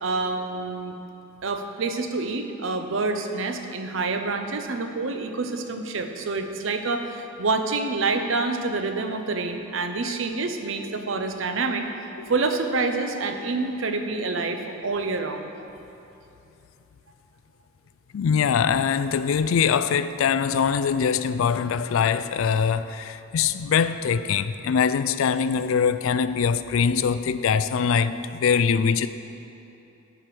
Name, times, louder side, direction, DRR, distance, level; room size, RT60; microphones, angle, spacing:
voice 1, 0.0-1.0 1.4-11.9 12.3-15.4, right 3 dB, 70° right, 6 dB, 0.7 m, -27 dB
voice 2, 18.1-29.1, left 6 dB, 85° left, 13 dB, 0.4 m, -23 dB
11.5 x 5.0 x 6.1 m, 2.9 s
head